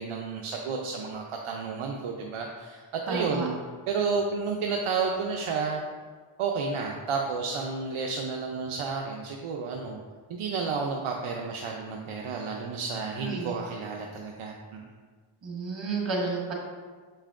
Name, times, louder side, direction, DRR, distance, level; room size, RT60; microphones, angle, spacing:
voice 1, 0.0-3.5 3.9-5.8 6.4-10.0 10.3-14.8, right 5 dB, 85° right, 0 dB, 0.6 m, -31 dB
voice 2, 3.1-3.5 13.2-13.5 15.4-16.5, right 4 dB, 65° right, -2 dB, 1.7 m, -31 dB
7.4 x 5.4 x 2.5 m, 1.5 s
cardioid pair, 60°, 49 cm